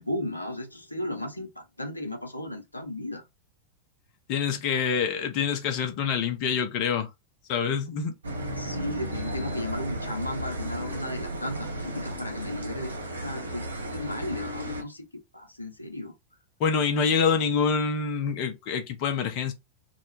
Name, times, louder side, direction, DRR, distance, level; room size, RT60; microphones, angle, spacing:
voice 1, 0.0-3.2 4.7-4.9 8.6-15.1 15.3-16.1, left 1 dB, 85° left, 0.7 m, -35 dB
voice 2, 4.3-7.1 7.5-8.1 16.6-19.5, left 6 dB, 45° left, 0.7 m, -26 dB
sound 1, 8.2-14.8, right 1 dB, 75° right, 0.6 m, -34 dB
2.3 x 2.1 x 3.1 m
figure-of-eight pair, 90°, 0 cm